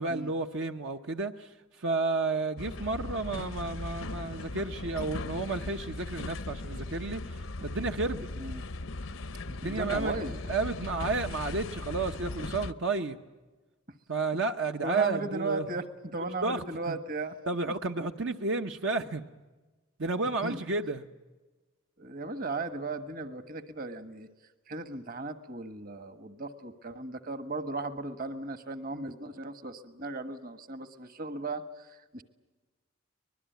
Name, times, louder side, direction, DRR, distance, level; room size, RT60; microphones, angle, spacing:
voice 1, 0.0-1.5 1.8-8.3 9.5-10.2 10.5-13.2 14.1-15.7 16.4-17.0 17.5-19.2 20.0-21.0, right 3 dB, 60° right, 0.9 m, -31 dB
sound 1, 2.6-12.7, left 2 dB, 70° left, 0.8 m, -38 dB
voice 2, 9.6-10.3 14.8-17.3 20.4-20.6 22.0-24.3 24.7-32.2, right 3 dB, 40° right, 1.4 m, -36 dB
24.5 x 21.0 x 9.3 m
head